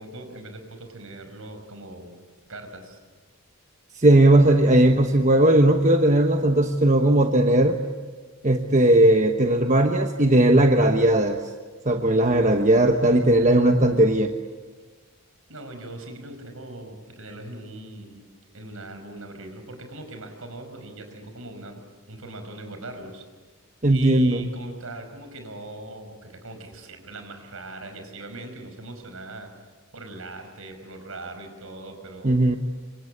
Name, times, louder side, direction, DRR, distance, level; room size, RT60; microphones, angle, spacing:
voice 1, 0.0-2.1 2.5-3.0 15.5-18.2 18.5-21.8 22.1-23.3 23.9-29.5 29.9-32.4, right 2 dB, 70° right, 6 dB, 5.3 m, -40 dB
voice 2, 4.0-7.8 8.4-11.4 11.9-14.3 23.8-24.5 32.2-32.6, right 1 dB, 35° right, 4 dB, 1.2 m, -18 dB
27.5 x 25.0 x 8.6 m, 1.4 s
head